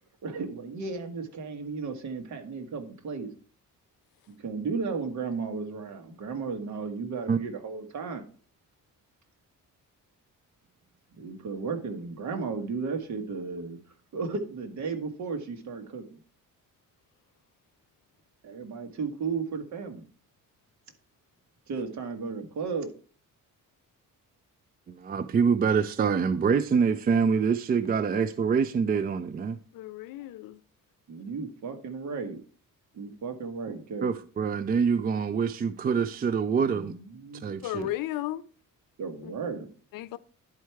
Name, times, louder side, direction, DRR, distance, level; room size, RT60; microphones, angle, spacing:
voice 1, 0.2-3.3 4.3-8.2 11.2-13.8 14.1-16.2 18.4-20.0 21.7-22.9 31.1-32.4 32.9-34.1 36.7-37.4 39.0-39.7, right 4 dB, 60° right, 1.5 m, -34 dB
voice 2, 24.9-29.6 34.0-36.9 37.3-37.9, right 6 dB, 30° right, 0.4 m, -25 dB
voice 3, 29.7-30.6 37.6-38.4 39.9-40.2, left 15 dB, 90° left, 0.6 m, -34 dB
10.5 x 4.6 x 4.5 m
cardioid pair, 130°, 33 cm